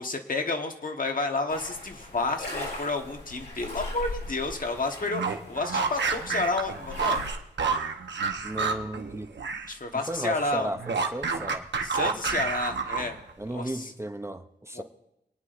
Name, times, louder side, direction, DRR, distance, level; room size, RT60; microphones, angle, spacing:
voice 1, 0.0-7.2 9.7-10.7 11.8-13.2 13.5-13.9 14.7-14.8, left 3 dB, 50° left, 4 dB, 1.3 m, -30 dB
sound 1, 1.5-7.3, left 2 dB, 70° left, 5.0 m, -39 dB
sound 2, 5.0-9.7 10.0-13.3, right 5 dB, 80° right, 0.9 m, -29 dB
voice 2, 8.4-9.3 9.9-11.7 13.4-14.8, right 1 dB, 15° right, 7 dB, 0.6 m, -35 dB
28.5 x 9.7 x 2.5 m, 0.87 s
wide cardioid pair, 95°, 18 cm